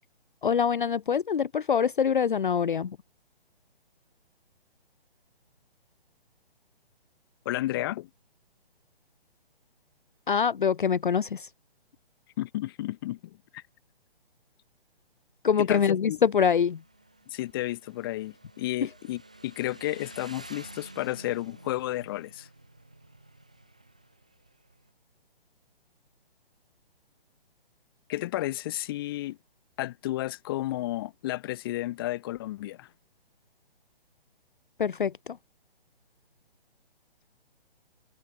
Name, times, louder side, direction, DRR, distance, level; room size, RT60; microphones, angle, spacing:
voice 1, 0.4-3.0 10.3-11.5 15.4-16.8 34.8-35.4, left 7 dB, 55° left, 0.6 m, -25 dB
voice 2, 7.4-8.1 12.4-13.6 15.6-16.2 17.3-22.5 28.1-29.4 29.8-32.9, left 16 dB, 25° left, 1.1 m, -32 dB
Motorcycle, 16.7-24.9, right 2 dB, 10° right, 0.4 m, -50 dB
figure-of-eight pair, 135°, 30 cm